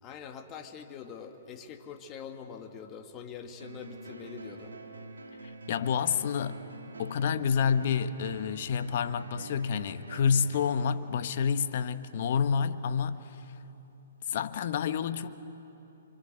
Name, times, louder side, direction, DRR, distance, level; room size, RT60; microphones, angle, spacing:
voice 1, 0.0-4.7, left 7 dB, 25° left, 2.0 m, -44 dB
sound 1, 3.6-10.8, right 2 dB, 85° right, 2.4 m, -46 dB
voice 2, 5.7-6.6 7.0-13.4 14.3-15.3, left 7 dB, 55° left, 1.2 m, -28 dB
27.0 x 25.5 x 8.0 m
hypercardioid pair, 130°, 0 cm